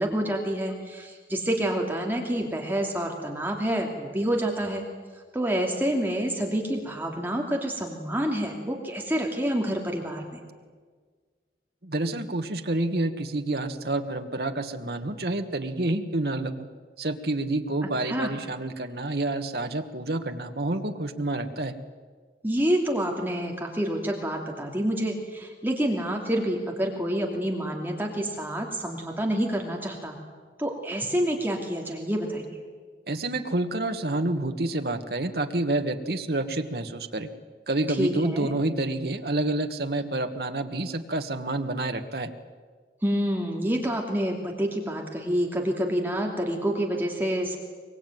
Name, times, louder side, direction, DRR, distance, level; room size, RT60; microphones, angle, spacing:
voice 1, 0.0-4.8 5.3-10.4 18.0-18.3 22.4-30.2 30.6-32.6 37.9-38.6 43.0-47.6, right 1 dB, 10° right, 1 dB, 2.7 m, -28 dB
voice 2, 11.8-16.7 17.0-21.7 33.1-37.3 37.7-42.3, right 2 dB, 60° right, 6 dB, 1.6 m, -28 dB
23.5 x 22.5 x 9.3 m, 1.6 s
head